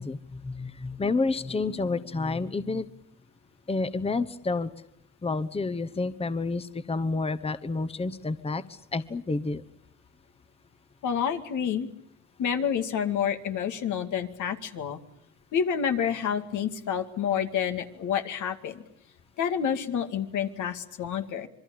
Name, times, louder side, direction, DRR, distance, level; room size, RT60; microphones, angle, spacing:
voice 1, 0.0-2.9 3.7-4.7 5.2-8.6 8.9-9.6, left 3 dB, 20° left, 13 dB, 1.1 m, -29 dB
voice 2, 11.0-11.9 12.4-15.0 15.5-18.8 19.4-21.5, left 8 dB, 80° left, 6 dB, 2.3 m, -28 dB
27.0 x 22.5 x 8.7 m, 0.73 s
cardioid pair, 90°, 30 cm